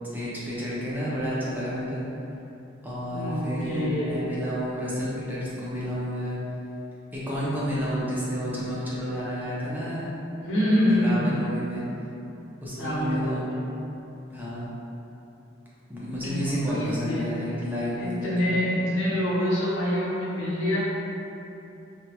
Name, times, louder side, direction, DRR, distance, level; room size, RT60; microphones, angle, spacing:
voice 1, 0.1-2.0 2.8-6.4 7.1-10.1 10.9-11.8 12.6-13.5 14.3-14.7 15.9-18.3, equal, 10° right, -9 dB, 0.5 m, -30 dB
voice 2, 3.1-4.3 10.4-11.5 12.8-13.5 16.2-17.2 18.0-20.8, left 1 dB, 75° left, -7 dB, 0.8 m, -26 dB
3.4 x 2.0 x 2.8 m, 2.9 s
head